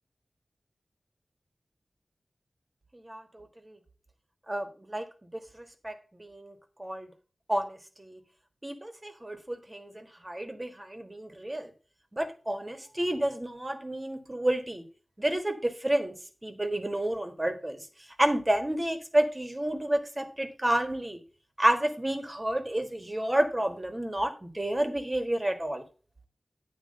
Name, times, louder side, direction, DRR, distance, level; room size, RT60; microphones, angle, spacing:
voice 1, 2.9-3.8 4.5-5.0 5.3-6.5 6.8-7.1 7.5-8.2 8.6-11.7 12.1-14.8 15.2-16.1 16.4-17.8 18.2-21.2 21.6-25.8, right 1 dB, 25° right, 5 dB, 1.5 m, -30 dB
9.3 x 3.3 x 6.5 m, 0.37 s
wide cardioid pair, 55°, 0 cm